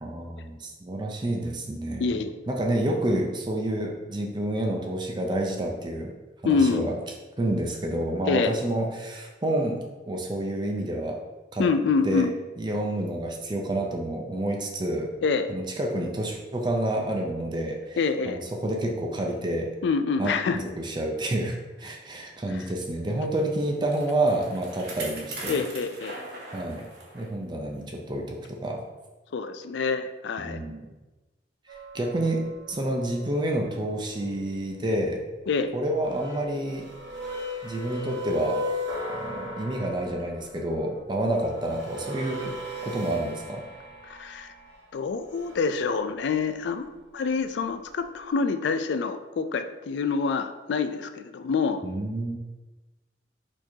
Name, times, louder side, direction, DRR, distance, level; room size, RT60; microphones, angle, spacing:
voice 1, 0.0-6.1 6.4-6.9 7.4-11.2 11.5-11.7 12.0-12.3 12.6-15.1 15.5-18.0 18.3-19.7 20.2-25.6 26.5-26.9 27.1-28.8 30.4-30.8 31.7-35.2 35.7-36.8 37.6-38.6 39.1-42.5 42.8-43.6 51.8-52.4, right 1 dB, 25° right, 1 dB, 0.5 m, -29 dB
voice 2, 2.0-2.3 6.4-6.9 8.3-8.5 11.6-12.3 15.2-15.5 18.0-18.4 19.8-20.6 22.5-22.6 25.5-26.2 29.3-30.6 35.5-35.7 44.0-44.5 44.9-51.8, left 5 dB, 80° left, 9 dB, 0.3 m, -26 dB
Bicycle, 23.4-27.3 27.7-27.8 28.6-28.7, right 2 dB, 65° right, 1.0 m, -40 dB
sound 1, 31.7-33.3 35.8-40.4 41.2-44.7 45.3-45.7, left 1 dB, 80° right, 1.0 m, -37 dB
4.4 x 4.4 x 2.7 m, 1.2 s
head